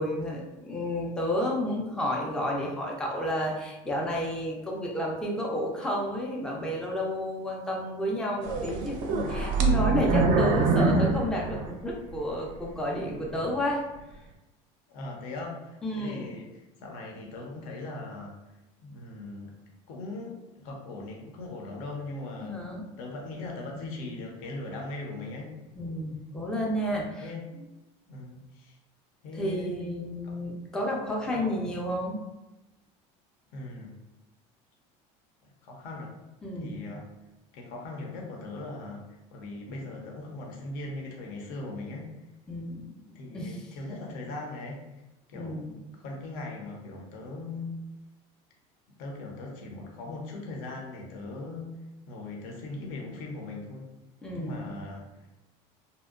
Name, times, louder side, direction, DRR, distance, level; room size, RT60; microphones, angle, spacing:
voice 1, 0.0-13.8 15.8-16.3 22.4-22.8 25.8-27.3 29.4-32.2 36.4-36.8 42.5-42.9 43.3-43.6 45.3-45.8 54.2-54.8, left 1 dB, 5° left, -2 dB, 0.3 m, -31 dB
sound 1, 8.4-12.2 12.6-12.7 13.3-13.5, right 4 dB, 85° right, 0.4 m, -25 dB
voice 2, 14.9-19.6 19.9-22.6 23.0-25.6 27.2-27.4 28.1-28.8 29.2-29.7 30.2-30.6 31.0-31.7 33.5-33.9 35.4-36.1 36.6-37.1 37.5-39.0 39.3-42.1 43.1-45.0 45.3-47.8 49.0-53.9 54.3-55.1, left 2 dB, 65° left, 0 dB, 0.7 m, -40 dB
2.7 x 2.1 x 2.4 m, 1.0 s
cardioid pair, 145°, 15 cm